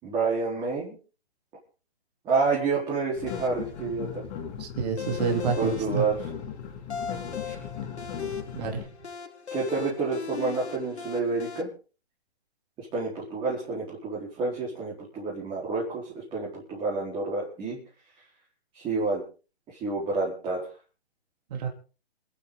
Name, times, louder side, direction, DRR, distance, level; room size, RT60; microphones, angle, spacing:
voice 1, 0.0-1.0 2.2-4.2 5.6-6.2 7.4-7.5 9.5-11.7 12.8-17.8 18.7-19.2 19.7-20.7, right 4 dB, 15° right, -5 dB, 4.5 m, -29 dB
sound 1, 3.2-8.8, left 8 dB, 25° left, 3.0 m, -38 dB
sound 2, 3.3-11.6, left 6 dB, 90° left, 2.8 m, -39 dB
voice 2, 4.6-6.0 8.5-8.9 21.5-21.7, right 5 dB, 40° right, 2 dB, 3.9 m, -28 dB
27.0 x 9.7 x 4.1 m, 0.37 s
hypercardioid pair, 155°, 33 cm